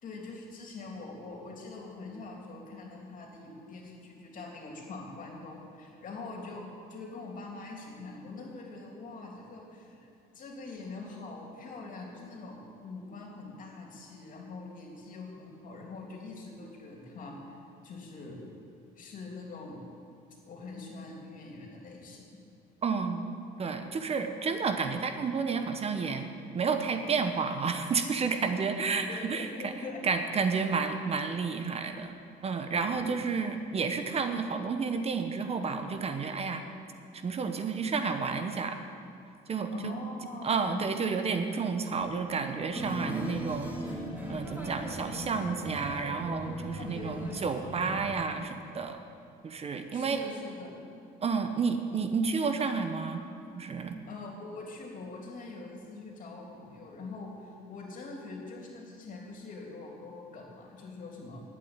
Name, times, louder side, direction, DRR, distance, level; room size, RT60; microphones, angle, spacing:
voice 1, 0.0-10.1 10.3-18.5 19.0-19.9 20.5-22.4 28.9-30.0 32.9-33.2 39.7-40.9 46.8-47.4 49.9-50.8 54.0-61.4, left 3 dB, 50° left, 0 dB, 3.1 m, -43 dB
voice 2, 22.8-23.2 23.6-26.3 26.5-29.7 30.0-32.2 32.4-36.6 37.2-38.8 39.5-39.9 40.4-43.7 44.3-49.0 49.4-50.2 51.2-53.2 53.6-54.0, right 5 dB, 35° right, 7 dB, 1.0 m, -31 dB
sound 1, 42.7-48.1, equal, 10° right, 2.8 m, -38 dB
11.5 x 8.6 x 9.0 m, 2.5 s
cardioid pair, 110°, 17 cm